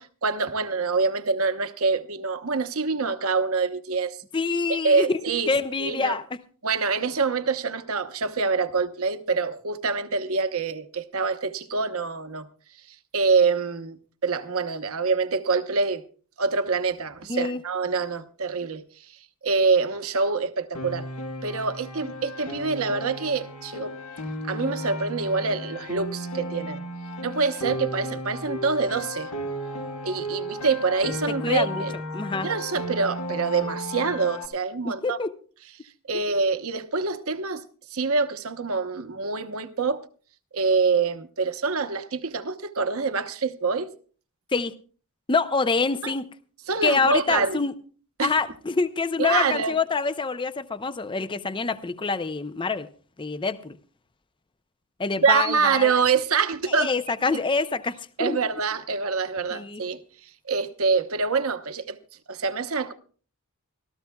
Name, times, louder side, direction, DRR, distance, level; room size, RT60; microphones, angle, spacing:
voice 1, 0.0-4.2 4.7-5.5 5.8-6.2 6.6-12.5 13.1-16.0 16.4-19.1 19.4-21.1 21.4-24.0 24.4-26.8 27.2-29.3 30.0-31.9 32.4-35.2 36.1-37.6 37.9-40.0 40.5-43.9 46.0-46.1 46.7-47.6 48.2-48.3 49.2-49.7 55.2-56.9 58.2-62.0 62.3-62.9, right 4 dB, 70° right, 1.0 m, -25 dB
voice 2, 4.3-5.2 5.5-6.2 17.3-17.6 31.3-31.8 32.1-32.5 34.8-35.3 44.5-44.7 45.3-46.3 46.8-47.7 48.2-52.9 53.2-53.8 55.0-55.9 56.8-58.4 59.5-59.8, left 4 dB, 20° left, 0.5 m, -26 dB
Piano, 20.7-34.5, left 1 dB, 75° left, 1.4 m, -34 dB
25.5 x 14.0 x 2.3 m
head